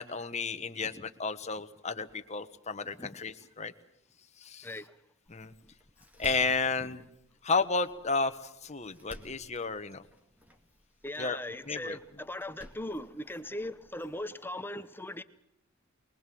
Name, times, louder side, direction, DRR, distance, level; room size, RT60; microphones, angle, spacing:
voice 1, 0.0-3.7 4.4-4.7 5.3-5.5 6.2-7.0 7.4-8.3 8.6-10.1 11.2-11.4 11.7-12.0, left 4 dB, 30° left, 1.2 m, -32 dB
voice 2, 4.6-5.0 6.8-6.9 11.0-15.2, left 1 dB, 10° left, 0.8 m, -39 dB
Door, 5.3-14.2, equal, 5° right, 2.1 m, -56 dB
24.0 x 21.5 x 7.7 m
head